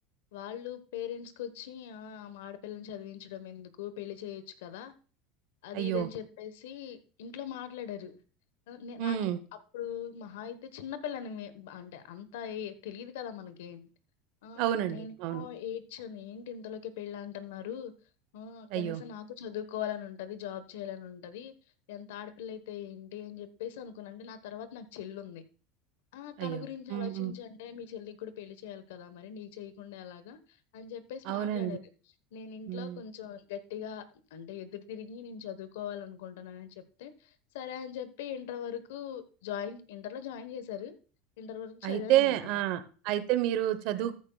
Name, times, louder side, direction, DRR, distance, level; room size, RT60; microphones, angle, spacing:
voice 1, 0.3-4.9 5.6-8.2 8.7-9.3 9.7-13.9 14.4-17.9 18.3-21.5 21.9-25.4 26.1-30.4 30.7-31.9 32.3-34.0 34.3-41.0 41.4-42.5, left 9 dB, 80° left, 1.1 m, -41 dB
voice 2, 5.7-6.1 9.0-9.4 14.6-15.5 18.7-19.0 26.4-27.3 31.3-31.8 32.7-33.0 41.8-44.2, right 13 dB, 65° right, 0.9 m, -30 dB
14.0 x 10.5 x 2.3 m
supercardioid pair, 105°, 0 cm